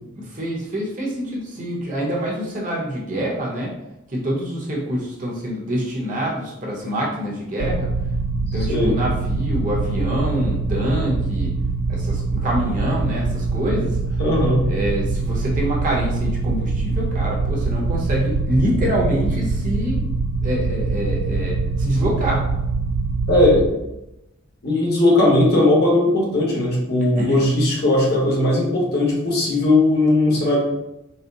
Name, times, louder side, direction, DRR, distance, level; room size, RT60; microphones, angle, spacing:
voice 1, 0.2-3.7 4.1-7.9 8.5-11.5 11.9-14.2 14.7-20.1 20.4-22.5 27.2-27.4, equal, 40° right, -3 dB, 0.9 m, -25 dB
sound 1, 7.6-23.7, right 3 dB, 85° right, 0.3 m, -24 dB
voice 2, 14.2-14.6 23.3-23.8 24.6-30.6, left 1 dB, 50° left, -3 dB, 1.1 m, -18 dB
4.1 x 2.1 x 3.9 m, 0.89 s
head